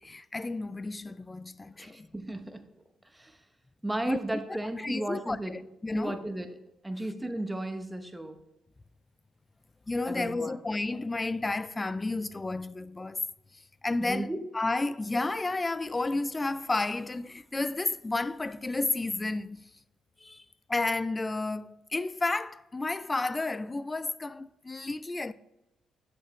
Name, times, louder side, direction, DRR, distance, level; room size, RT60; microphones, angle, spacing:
voice 1, 0.0-2.1 4.0-4.2 4.8-6.2 9.9-13.2 13.5-19.7 20.2-25.3, left 2 dB, 20° left, 0.3 m, -32 dB
voice 2, 1.8-2.6 3.1-3.4 3.8-5.6 5.9-6.5 6.8-8.4 10.1-10.6 14.0-14.4, right 1 dB, 10° right, 0.9 m, -34 dB
7.6 x 7.3 x 3.1 m
cardioid pair, 90°, 0 cm